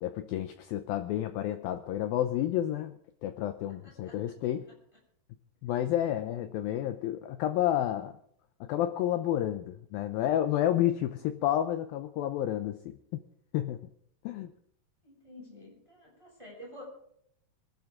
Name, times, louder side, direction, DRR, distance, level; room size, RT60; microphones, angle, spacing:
voice 1, 0.0-2.9 3.2-4.7 5.6-8.2 8.6-13.2 13.5-13.8 14.2-14.5, left 12 dB, 90° left, 9 dB, 2.0 m, -30 dB
voice 2, 15.0-16.8, left 1 dB, 5° right, -3 dB, 7.1 m, -49 dB
25.5 x 12.0 x 3.7 m, 0.70 s
omnidirectional pair, 5.1 m